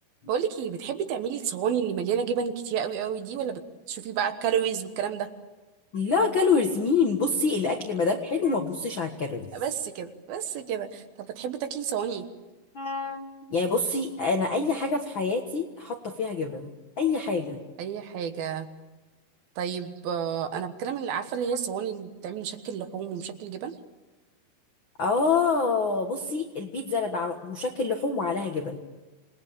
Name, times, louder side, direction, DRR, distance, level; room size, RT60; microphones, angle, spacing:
voice 1, 0.3-3.6 3.9-5.3 7.7-7.8 9.5-12.3 17.8-18.7 19.6-23.8, right 8 dB, 70° right, 8 dB, 2.9 m, -30 dB
voice 2, 5.9-9.5 12.7-17.6 25.0-28.8, left 4 dB, 70° left, 4 dB, 1.1 m, -26 dB
27.5 x 19.5 x 8.8 m, 1.2 s
omnidirectional pair, 4.8 m